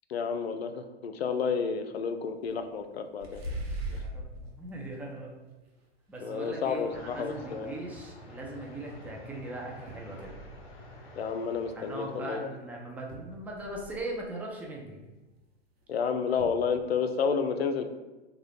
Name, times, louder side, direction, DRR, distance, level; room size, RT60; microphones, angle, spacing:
voice 1, 0.1-3.4 6.2-7.7 11.2-12.5 15.9-17.9, left 6 dB, 70° left, 8 dB, 0.5 m, -30 dB
sound 1, 2.0-2.1 2.5-2.7 3.2-4.2 4.8-5.2 5.7-5.8 6.1-7.1 9.0-9.1 9.9-10.6 12.1-12.2 12.6-12.7 12.9-14.1 15.8-15.9 16.4-16.8, right 1 dB, 70° right, 0.9 m, -40 dB
voice 2, 3.9-5.4 6.1-10.3 11.7-15.0, right 1 dB, 5° right, -1 dB, 0.4 m, -40 dB
sound 2, 6.9-12.2, left 1 dB, 35° left, 0.8 m, -49 dB
3.5 x 2.3 x 3.3 m, 1.1 s
figure-of-eight pair, 95°, 32 cm